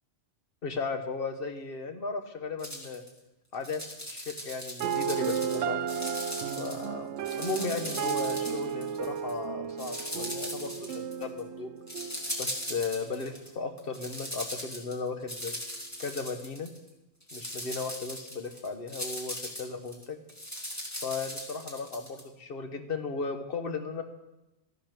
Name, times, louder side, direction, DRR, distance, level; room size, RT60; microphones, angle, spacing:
voice 1, 0.6-3.1 3.5-3.8 4.1-5.8 6.6-11.7 12.4-15.6 16.0-16.7 17.3-20.2 21.0-24.0, left 4 dB, 50° left, 6 dB, 1.4 m, -36 dB
sound 1, 2.6-3.1 3.5-5.6 5.9-6.9 7.2-9.3 9.8-11.4 11.9-13.5 13.8-16.9 17.2-22.2, equal, 15° left, 2.3 m, -39 dB
sound 2, 4.8-12.8, right 8 dB, 75° right, 0.9 m, -34 dB
13.0 x 10.0 x 6.2 m, 0.94 s
omnidirectional pair, 1.2 m